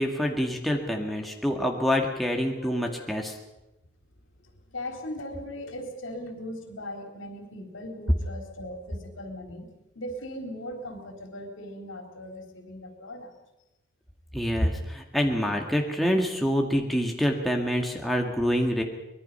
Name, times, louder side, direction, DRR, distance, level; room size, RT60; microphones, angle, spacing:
voice 1, 0.0-3.4 14.3-18.8, equal, ahead, 0 dB, 1.9 m, -26 dB
voice 2, 2.5-3.2 4.4-9.7 10.0-13.4, left 1 dB, 85° left, 4 dB, 3.7 m, -39 dB
24.5 x 21.0 x 5.7 m, 0.99 s
head